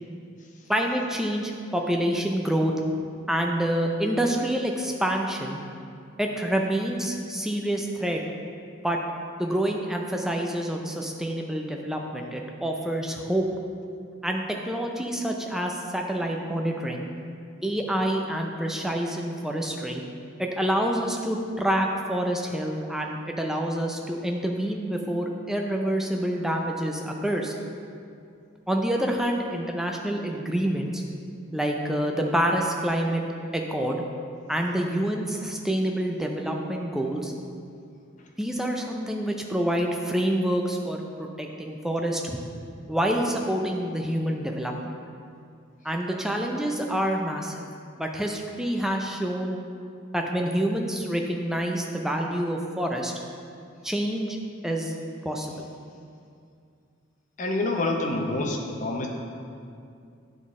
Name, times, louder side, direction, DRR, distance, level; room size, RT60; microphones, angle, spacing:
voice 1, 0.7-2.7 3.3-5.6 6.2-8.2 8.8-9.0 9.4-13.4 14.2-17.1 17.6-20.0 20.4-27.5 28.7-31.0 31.5-33.2 33.5-34.0 34.5-37.3 38.4-42.4 42.9-44.7 45.8-47.6 48.0-49.6 50.1-53.1 53.8-54.4 54.6-54.9 55.2-55.6, right 1 dB, ahead, 1 dB, 0.4 m, -27 dB
voice 2, 57.4-59.1, left 2 dB, 40° left, 1 dB, 0.6 m, -27 dB
9.1 x 4.0 x 3.7 m, 2.4 s
head